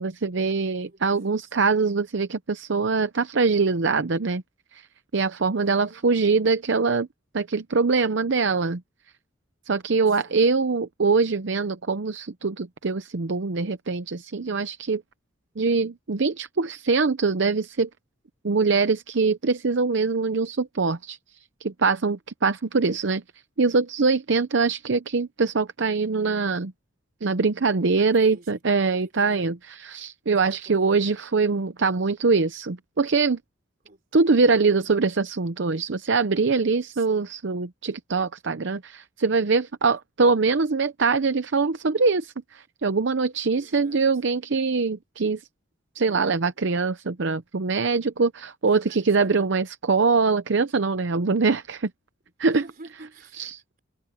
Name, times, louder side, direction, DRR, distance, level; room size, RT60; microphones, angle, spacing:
voice 1, 0.0-4.4 4.7-4.9 5.1-7.1 7.3-8.8 9.7-15.0 15.6-17.9 18.4-23.2 23.6-26.7 27.2-33.4 34.1-45.4 45.9-51.9 52.4-52.6 53.4-53.6, right 4 dB, 65° right, 0.7 m, -23 dB
voice 2, 0.7-1.0 1.3-1.5 5.5-6.1 10.1-10.6 27.9-29.5 30.5-31.0 33.8-34.0 34.9-35.1 36.9-37.3 39.9-40.0 43.5-44.0 46.0-46.6 48.7-49.4 52.3-53.5, right 2 dB, 45° right, 3.8 m, -49 dB
head